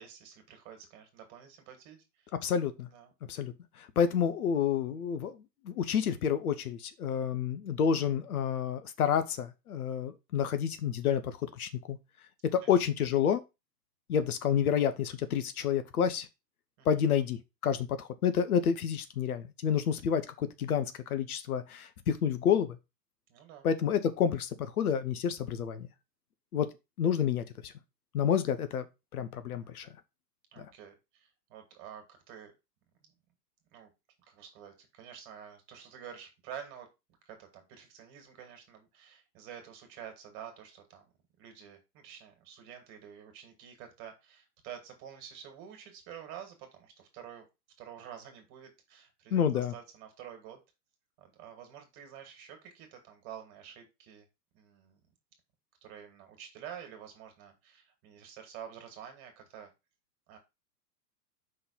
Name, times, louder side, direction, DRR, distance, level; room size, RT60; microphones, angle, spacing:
voice 1, 0.0-2.3 2.9-3.1 12.6-12.7 16.8-16.9 23.3-23.7 29.5-29.8 30.5-32.5 33.0-33.1 33.7-33.9 34.3-36.9 37.3-41.1 41.4-47.5 47.8-50.6 51.2-54.3 54.5-55.0 55.8-59.7 60.3-60.4, right 9 dB, 40° right, 2.5 m, -49 dB
voice 2, 2.4-2.9 3.3-5.4 5.6-12.0 12.5-13.4 14.1-16.3 16.8-22.8 23.6-25.9 26.5-26.7 27.0-27.7 28.1-28.9 29.1-29.9 30.6-30.7 49.3-49.7, left 8 dB, 60° left, 1.0 m, -29 dB
5.5 x 3.9 x 5.6 m
figure-of-eight pair, 105°, 50 cm